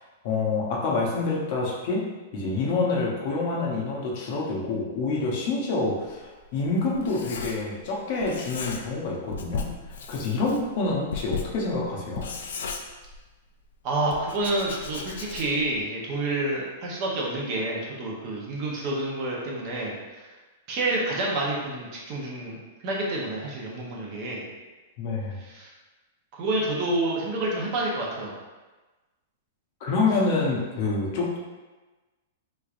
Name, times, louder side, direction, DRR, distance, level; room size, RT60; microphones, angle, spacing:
voice 1, 0.2-2.1 2.3-9.7 10.1-12.3 25.0-25.4 29.8-31.4, left 3 dB, 40° left, -3 dB, 0.7 m, -27 dB
Writing, 6.0-7.9 8.2-9.0 9.3-13.5 14.1-15.7, left 5 dB, 70° left, 0.4 m, -36 dB
voice 2, 13.8-20.0 20.7-24.4 25.4-25.7 26.4-28.3, right 2 dB, 35° right, -3 dB, 0.7 m, -28 dB
3.5 x 3.1 x 2.4 m, 1.2 s
supercardioid pair, 170°, 0 cm